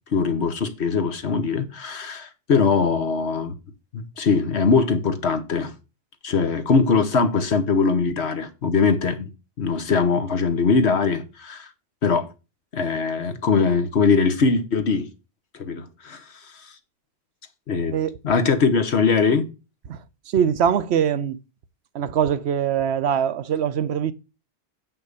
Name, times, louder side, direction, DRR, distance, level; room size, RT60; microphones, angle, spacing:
voice 1, 0.1-3.5 3.9-5.7 6.2-9.3 9.6-11.7 12.0-12.3 12.7-15.1 15.6-16.2 17.7-18.0 18.2-19.5, left 5 dB, 85° left, 1.4 m, -21 dB
voice 2, 20.3-21.4 21.9-24.1, right 8 dB, 80° right, 1.0 m, -22 dB
7.7 x 6.0 x 6.8 m
omnidirectional pair, 1.1 m